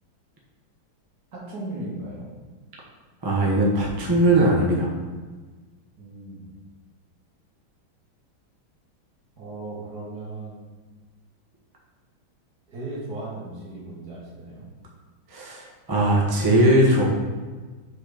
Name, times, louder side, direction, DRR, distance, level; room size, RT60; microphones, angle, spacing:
voice 1, 1.3-2.3 6.0-6.5 9.4-10.6 12.7-14.7, right 2 dB, 50° right, -6 dB, 2.1 m, -36 dB
voice 2, 3.2-4.9 15.3-17.0, right 1 dB, 20° right, -3 dB, 0.5 m, -20 dB
5.7 x 4.4 x 5.1 m, 1.4 s
omnidirectional pair, 2.2 m